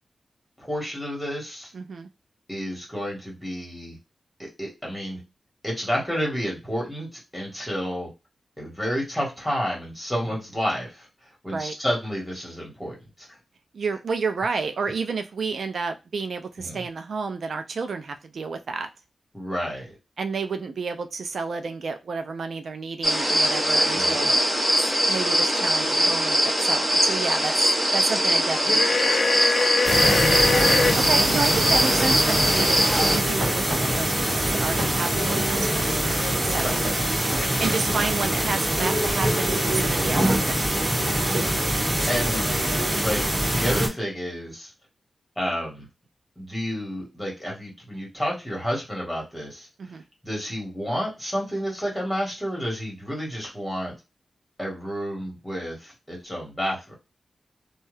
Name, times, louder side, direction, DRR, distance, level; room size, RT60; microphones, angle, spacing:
voice 1, 0.6-1.7 2.5-4.0 4.4-5.2 5.6-8.1 8.6-11.1 11.4-13.3 16.6-16.9 19.3-20.0 23.9-24.3 29.9-30.3 36.6-36.8 37.6-38.1 41.2-44.7 45.3-45.9 46.4-49.7 50.2-53.9 54.6-57.0, equal, 5° left, -2 dB, 1.5 m, -30 dB
voice 2, 1.7-2.1 11.5-11.7 13.7-18.9 20.2-24.4 24.8-29.3 30.9-36.0 36.4-36.8 37.6-40.7 49.8-50.0, right 4 dB, 70° right, 7 dB, 0.3 m, -31 dB
sound 1, 23.0-33.2, equal, 10° right, 1.3 m, -22 dB
sound 2, 28.7-31.0, left 4 dB, 60° left, 0.4 m, -23 dB
sound 3, 29.8-43.9, right 1 dB, 30° right, 1.4 m, -24 dB
2.7 x 2.3 x 3.2 m, 0.25 s
wide cardioid pair, 115°, 0 cm